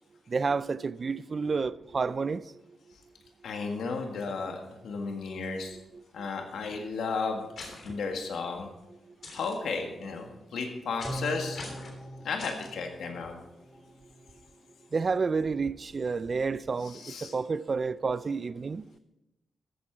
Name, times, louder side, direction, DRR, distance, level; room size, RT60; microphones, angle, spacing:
voice 1, 0.3-2.4 5.9-6.0 14.9-18.8, right 4 dB, 35° right, 0.3 m, -30 dB
voice 2, 3.4-5.8 6.1-7.5 7.8-8.7 9.3-11.6 12.2-13.3 16.8-17.3, left 4 dB, 85° left, 1.7 m, -34 dB
sound 1, 7.6-7.9 9.2-9.5 11.0-11.3 11.5-11.9 12.4-12.7, left 3 dB, 55° left, 3.3 m, -43 dB
sound 2, 11.0-14.4 14.7-14.8, right 1 dB, 10° left, 1.3 m, -42 dB
14.5 x 8.8 x 4.6 m
wide cardioid pair, 155°, 0 cm